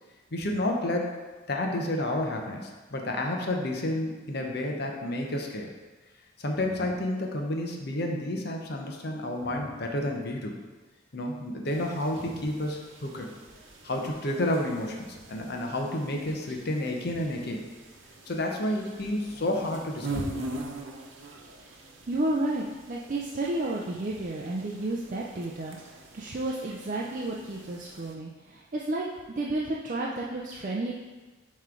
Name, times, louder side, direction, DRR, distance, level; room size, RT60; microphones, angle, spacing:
voice 1, 0.3-1.2 1.5-5.7 6.4-10.6 11.1-13.3 13.8-17.6 18.3-20.3, left 1 dB, 55° left, 2 dB, 0.8 m, -30 dB
sound 1, 11.7-28.1, right 2 dB, 90° right, 0.9 m, -43 dB
voice 2, 22.1-25.8 26.1-29.0 29.4-30.9, right 2 dB, 40° right, -3 dB, 0.5 m, -31 dB
9.1 x 3.2 x 3.8 m, 1.3 s
head